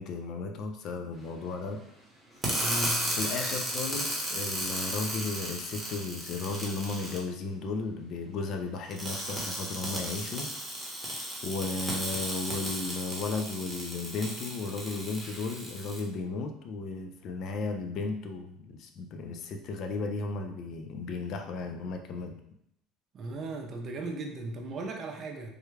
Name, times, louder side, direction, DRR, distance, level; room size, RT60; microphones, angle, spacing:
voice 1, 0.0-1.8 3.1-10.5 11.4-22.4, left 3 dB, 50° left, 5 dB, 0.4 m, -35 dB
sound 1, 2.4-7.2 8.9-16.0, right 1 dB, ahead, 0.9 m, -34 dB
voice 2, 2.6-3.1 23.1-25.5, right 2 dB, 35° right, 3 dB, 0.5 m, -36 dB
3.4 x 2.2 x 3.2 m, 0.74 s
cardioid pair, 135°, 0 cm